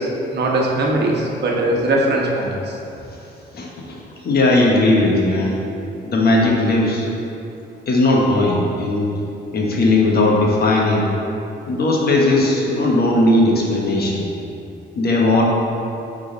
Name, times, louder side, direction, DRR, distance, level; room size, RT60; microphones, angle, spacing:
voice 1, 0.0-2.8, right 1 dB, 60° right, -2 dB, 1.2 m, -20 dB
voice 2, 3.5-4.0 4.2-5.7 6.0-7.1 7.9-9.1 9.5-11.1 11.7-14.2 14.9-15.4, left 2 dB, 55° left, -2 dB, 1.3 m, -17 dB
8.4 x 3.9 x 3.9 m, 2.7 s
cardioid pair, 90°, 20 cm